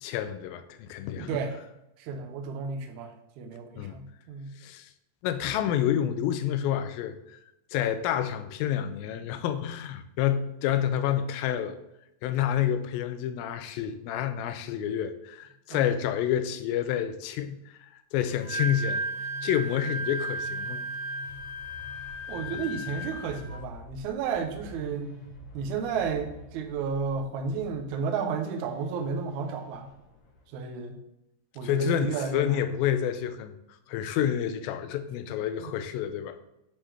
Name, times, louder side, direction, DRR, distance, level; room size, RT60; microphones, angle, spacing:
voice 1, 0.0-1.4 3.8-4.0 4.6-4.9 5.2-7.4 7.7-11.8 12.2-20.9 31.6-33.5 33.9-36.4, left 10 dB, 85° left, 2.4 m, -29 dB
voice 2, 1.2-1.6 2.0-4.5 15.7-15.9 22.3-25.1 25.5-29.9 30.5-31.0 31.6-32.6 35.6-35.7, right 5 dB, 75° right, 1.8 m, -32 dB
Wind instrument woodwind instrument, 18.3-23.6, right 2 dB, 25° right, 0.8 m, -34 dB
sound 1, 18.7-30.5, left 1 dB, 65° left, 2.1 m, -48 dB
9.7 x 3.8 x 3.3 m
omnidirectional pair, 4.1 m